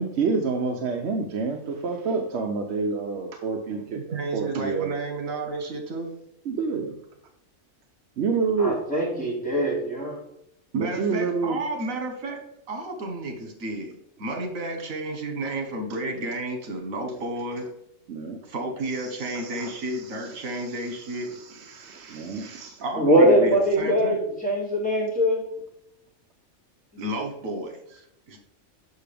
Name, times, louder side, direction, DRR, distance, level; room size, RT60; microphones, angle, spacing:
voice 1, 0.0-4.9 6.5-6.9 8.2-8.8 10.7-11.6 18.1-18.4 18.9-22.8, right 4 dB, 60° right, 3 dB, 0.9 m, -29 dB
voice 2, 3.9-6.1 10.7-12.4 12.7-17.6 18.5-21.3 22.8-24.2 27.0-28.4, right 2 dB, 80° right, 4 dB, 1.6 m, -32 dB
voice 3, 8.6-10.2 23.0-25.4 26.9-27.0, equal, 5° left, -5 dB, 2.4 m, -22 dB
6.7 x 5.7 x 3.4 m, 0.80 s
omnidirectional pair, 1.4 m